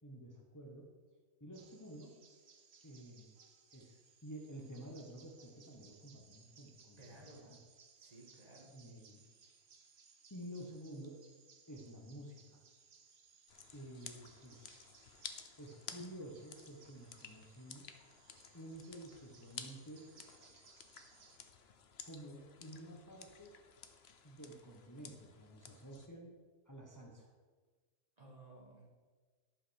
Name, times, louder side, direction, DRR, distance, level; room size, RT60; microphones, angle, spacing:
voice 1, 0.0-1.0 1.4-2.2 2.8-3.3 3.7-7.6 8.1-8.4 8.6-9.2 10.3-11.2 11.7-12.6 13.7-14.8 15.6-17.9 18.5-20.1 22.0-23.5 24.2-26.3 26.6-27.3, right 1 dB, 15° left, -1 dB, 1.2 m, -51 dB
sound 1, 1.5-21.4, right 5 dB, 60° right, 1.2 m, -65 dB
voice 2, 7.0-7.4 8.0-8.7 28.2-28.9, right 2 dB, 35° right, -2 dB, 2.0 m, -57 dB
sound 2, 13.5-26.1, left 6 dB, 60° left, 1.1 m, -54 dB
11.0 x 5.8 x 6.4 m, 1.4 s
omnidirectional pair, 1.2 m